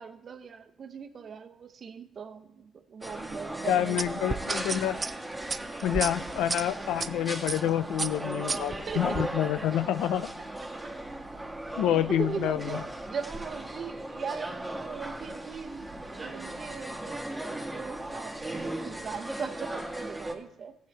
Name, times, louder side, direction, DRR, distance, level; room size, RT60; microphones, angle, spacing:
voice 1, 0.0-4.6 8.5-9.2 11.9-12.8 13.1-15.9 16.1-20.8, right 6 dB, 50° right, 8 dB, 0.8 m, -40 dB
sound 1, 3.0-20.3, right 1 dB, 5° right, 1.7 m, -37 dB
voice 2, 3.7-5.0 5.8-10.3 11.8-12.8, left 11 dB, 90° left, 14 dB, 0.4 m, -28 dB
sound 2, 4.0-7.1 7.5-7.7 8.0-9.3, right 4 dB, 30° right, 0.4 m, -33 dB
14.5 x 8.5 x 3.3 m, 0.88 s
cardioid pair, 90°, 0 cm